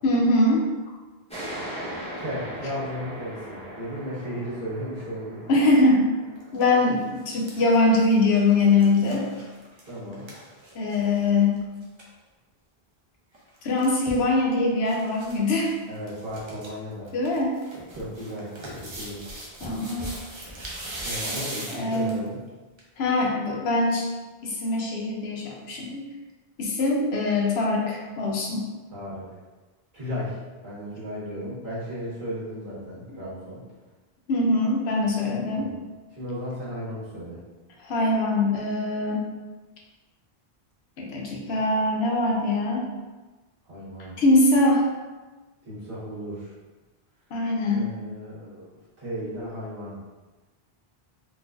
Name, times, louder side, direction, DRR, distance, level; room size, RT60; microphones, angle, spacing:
voice 1, 0.0-0.7 5.5-6.1 6.5-9.3 10.7-11.6 13.6-15.7 17.1-17.6 19.6-20.2 21.7-22.2 23.0-24.1 24.4-26.0 26.6-28.7 34.3-35.7 37.8-39.2 41.0-42.9 44.2-44.8 47.3-47.9, left 2 dB, 80° left, -1 dB, 0.9 m, -22 dB
sound 1, 1.3-8.5, equal, 5° left, 0.7 m, -40 dB
voice 2, 2.2-5.5 9.9-10.3 15.9-17.1 18.0-19.2 21.0-22.4 28.9-29.3 29.9-33.6 35.5-35.8 36.1-37.4 43.6-44.2 45.6-46.5 47.7-48.7 49.0-50.0, equal, 60° right, -9 dB, 1.5 m, -35 dB
sound 2, 6.4-6.6 7.0-11.2 11.6-11.7 11.8-12.1 13.3-14.3 14.9-15.4 15.6-15.7 16.1-16.7 17.1-22.3 22.8-22.9, right 1 dB, 35° right, 0.5 m, -39 dB
3.9 x 2.5 x 2.4 m, 1.2 s
omnidirectional pair, 1.1 m